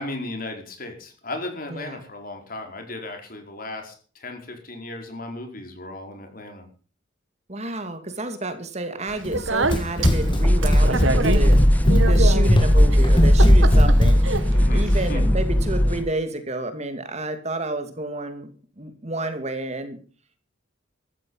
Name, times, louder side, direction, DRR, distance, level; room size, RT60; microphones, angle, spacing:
voice 1, 0.0-6.7 14.5-15.3, left 2 dB, 45° left, 5 dB, 4.8 m, -35 dB
voice 2, 1.7-2.0 7.5-14.2 14.7-18.5 18.8-20.0, right 2 dB, 35° right, 8 dB, 2.5 m, -30 dB
Speech, 9.1-15.1, right 3 dB, 70° right, 2.1 m, -28 dB
Run, 9.2-14.5, left 1 dB, 25° left, 1.9 m, -22 dB
sound 1, 10.1-16.1, equal, 10° left, 0.8 m, -18 dB
15.0 x 13.5 x 5.6 m, 0.40 s
head